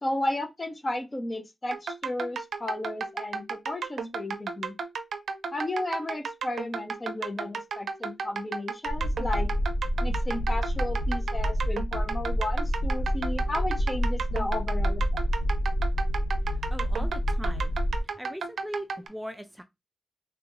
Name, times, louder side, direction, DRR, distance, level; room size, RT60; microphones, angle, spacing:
voice 1, 0.0-4.7 5.5-9.5 10.0-15.3, left 1 dB, 30° left, 0.9 m, -33 dB
sound 1, 1.7-19.1, right 5 dB, 90° right, 0.4 m, -34 dB
sound 2, 8.9-18.0, equal, 75° left, 0.7 m, -28 dB
voice 2, 16.5-17.7 18.2-19.6, equal, 10° right, 0.4 m, -40 dB
3.3 x 2.5 x 3.0 m
cardioid pair, 70°, 0 cm